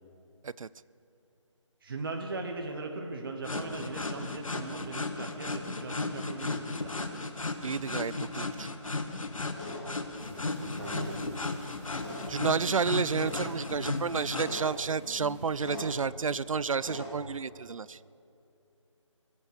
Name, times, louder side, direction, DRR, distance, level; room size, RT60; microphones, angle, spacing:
voice 1, 1.8-7.0 10.3-11.4, right 3 dB, 45° right, 3 dB, 1.3 m, -39 dB
sound 1, 3.4-14.5, left 3 dB, 90° left, 1.4 m, -35 dB
voice 2, 7.6-8.7 12.0-12.1 12.3-18.0, right 5 dB, 90° right, 20 dB, 0.4 m, -31 dB
sound 2, 9.5-17.1, left 1 dB, 20° left, 3.6 m, -44 dB
sound 3, 10.2-15.8, right 2 dB, 25° right, 2.0 m, -57 dB
21.5 x 8.4 x 6.7 m, 2.7 s
figure-of-eight pair, 165°, 17 cm